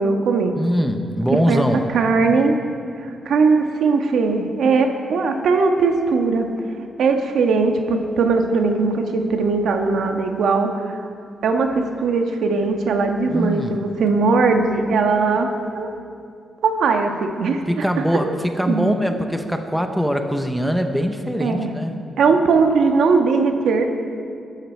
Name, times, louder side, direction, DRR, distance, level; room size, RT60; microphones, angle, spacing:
voice 1, 0.0-0.6 1.5-1.6 1.9-2.5 3.0-6.5 7.0-11.1 11.4-15.9 16.6-17.8 18.2-18.3 18.7-18.9 21.4-21.7 22.2-23.9, right 4 dB, 75° right, 4 dB, 1.5 m, -19 dB
voice 2, 0.6-1.8 13.3-13.8 17.7-22.0, equal, ahead, 5 dB, 0.9 m, -22 dB
23.0 x 12.5 x 4.6 m, 2.4 s
wide cardioid pair, 160°, 0 cm